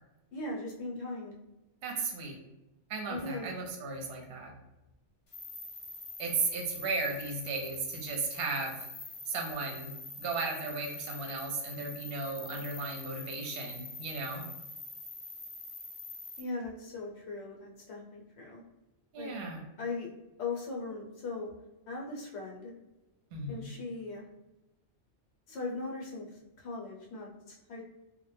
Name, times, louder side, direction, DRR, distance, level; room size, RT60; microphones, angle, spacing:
voice 1, 0.3-1.3 3.1-3.5 16.4-18.6 19.2-19.3 19.8-20.1 20.4-21.5 21.9-22.7 23.5-24.3 25.5-27.8, left 3 dB, 70° left, -1 dB, 0.8 m, -39 dB
voice 2, 1.8-2.4 2.9-4.5 6.2-8.8 9.3-9.9 10.2-14.4 19.1-19.6 23.3-23.6, right 3 dB, 60° right, 1 dB, 0.7 m, -35 dB
sound 1, 5.3-16.4, left 2 dB, 55° left, 0.3 m, -45 dB
2.1 x 2.0 x 3.1 m, 0.97 s
omnidirectional pair, 1.2 m